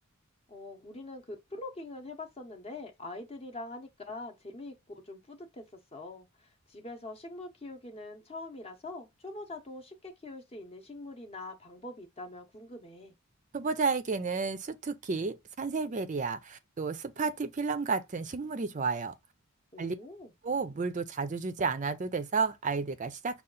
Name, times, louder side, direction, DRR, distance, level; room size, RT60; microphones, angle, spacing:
voice 1, 0.5-13.1 19.7-20.3, left 2 dB, 25° left, 0.7 m, -44 dB
voice 2, 13.5-19.1 19.8-20.0 20.4-23.4, right 4 dB, 35° right, 0.4 m, -32 dB
5.5 x 2.3 x 3.7 m
head